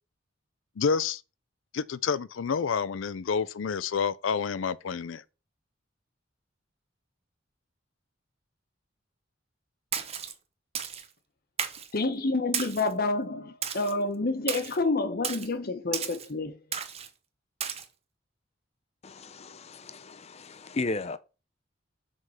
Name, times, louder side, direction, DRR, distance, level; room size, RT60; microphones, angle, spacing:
voice 1, 0.8-1.2 1.7-5.2, left 6 dB, 85° left, 0.5 m, -29 dB
Splash splatter, 9.9-10.3 10.7-11.1 11.6-11.9 12.5-12.9 13.6-13.9 14.5-14.8 15.2-15.5 15.9-16.3 16.7-17.1 17.6-17.8, right 7 dB, 35° right, 0.8 m, -33 dB
voice 2, 11.9-16.6, left 3 dB, 50° left, 1.0 m, -28 dB
voice 3, 19.0-21.2, left 2 dB, 35° left, 0.5 m, -35 dB
6.1 x 3.7 x 5.7 m
head